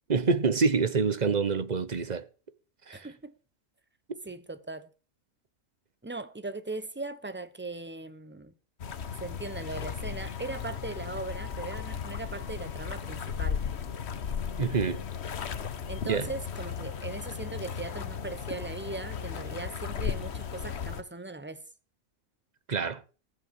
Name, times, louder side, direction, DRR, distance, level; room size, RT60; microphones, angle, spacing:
voice 1, 0.1-2.2 2.9-3.1 14.6-15.0 16.0-16.3 22.7-23.0, right 5 dB, 35° right, 0.9 m, -26 dB
voice 2, 2.9-3.3 4.2-4.9 6.0-8.5 9.2-13.6 15.9-21.6, right 3 dB, 10° right, 0.9 m, -39 dB
sound 1, 8.8-21.0, left 7 dB, 50° left, 1.2 m, -36 dB
15.0 x 8.5 x 7.2 m
omnidirectional pair, 1.5 m